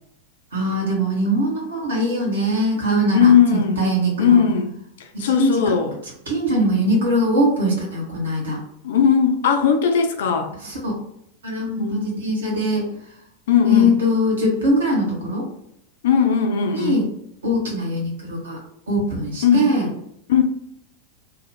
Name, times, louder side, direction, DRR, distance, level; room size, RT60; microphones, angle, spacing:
voice 1, 0.5-3.3 3.8-4.4 5.1-5.7 6.3-8.6 10.6-11.0 11.4-12.9 13.6-15.4 16.7-17.1 17.4-18.6 18.9-19.9, equal, 65° right, -2 dB, 1.2 m, -21 dB
voice 2, 3.1-3.8 4.2-4.7 5.0-5.9 8.8-10.5 11.8-12.2 13.5-13.9 16.0-17.1 19.4-19.7 20.3-20.4, left 7 dB, 60° left, 5 dB, 0.5 m, -18 dB
2.9 x 2.4 x 3.2 m, 0.76 s
figure-of-eight pair, 90°, 0 cm